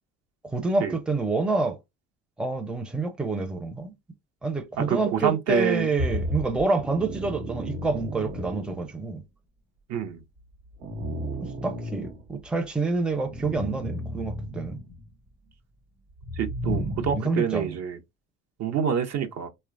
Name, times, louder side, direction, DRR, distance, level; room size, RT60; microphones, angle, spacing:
voice 1, 0.4-1.8 2.4-3.9 4.4-9.2 11.6-14.8 16.7-17.8, right 3 dB, 5° right, 0.6 m, -28 dB
voice 2, 4.8-5.9 9.9-10.2 16.4-18.0 18.6-19.5, right 8 dB, 50° right, 0.7 m, -27 dB
sound 1, 6.0-9.0 10.4-12.7 13.2-15.1 16.1-17.2, equal, 75° right, 0.9 m, -33 dB
2.9 x 2.2 x 2.5 m
hypercardioid pair, 70°, 34 cm